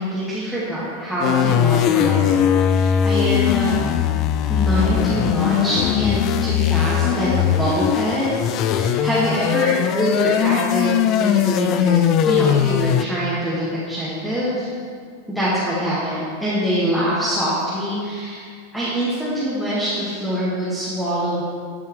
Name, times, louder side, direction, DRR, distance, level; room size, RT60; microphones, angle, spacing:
voice 1, 0.0-3.7 4.5-8.4 8.7-14.8 15.3-21.4, equal, ahead, -10 dB, 1.9 m, -24 dB
sound 1, 1.2-13.0, left 9 dB, 35° left, 0.3 m, -19 dB
11.5 x 5.6 x 3.2 m, 2.2 s
figure-of-eight pair, 90°, 0 cm